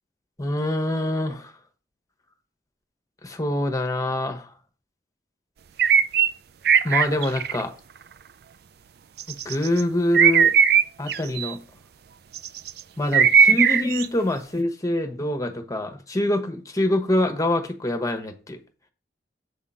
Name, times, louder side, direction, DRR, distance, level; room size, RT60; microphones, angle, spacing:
voice 1, 0.4-1.5 3.2-4.5 6.8-7.7 9.3-10.5 11.0-11.6 13.0-18.6, left 1 dB, 20° left, 6 dB, 1.1 m, -25 dB
sound 1, 5.8-6.3 6.7-7.6 9.2-9.8 10.1-11.5 12.4-12.8 13.1-14.1, right 7 dB, 60° right, 0.4 m, -18 dB
8.2 x 3.7 x 5.5 m, 0.34 s
head